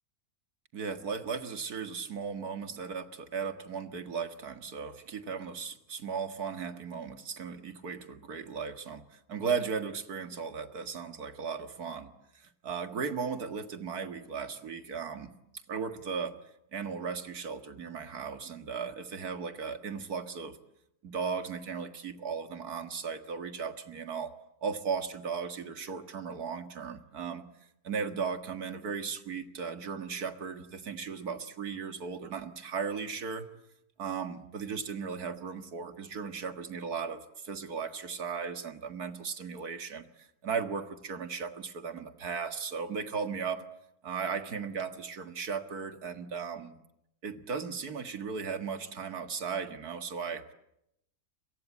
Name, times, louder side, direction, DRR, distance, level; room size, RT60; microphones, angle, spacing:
voice 1, 0.7-15.3 15.7-16.3 16.7-20.6 21.0-24.3 24.6-27.4 27.8-33.5 34.0-43.6 44.0-46.7 47.2-50.5, right 6 dB, 75° right, 8 dB, 2.3 m, -36 dB
29.5 x 23.5 x 8.5 m, 0.81 s
omnidirectional pair, 1.6 m